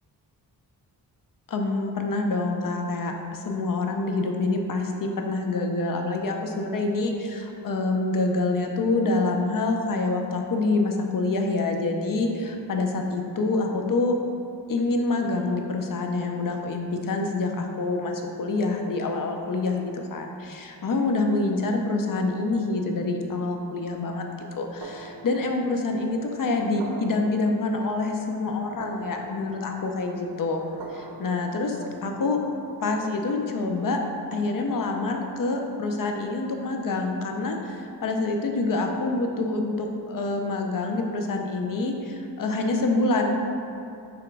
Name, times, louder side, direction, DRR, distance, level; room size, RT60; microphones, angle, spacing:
voice 1, 1.5-14.2 14.7-30.6 30.9-32.4 32.8-34.0 34.3-43.3, left 3 dB, 55° left, 3 dB, 0.5 m, -26 dB
sound 1, 24.8-32.6, right 3 dB, 75° right, 0.5 m, -44 dB
3.5 x 2.9 x 4.6 m, 2.6 s
wide cardioid pair, 70°, 40 cm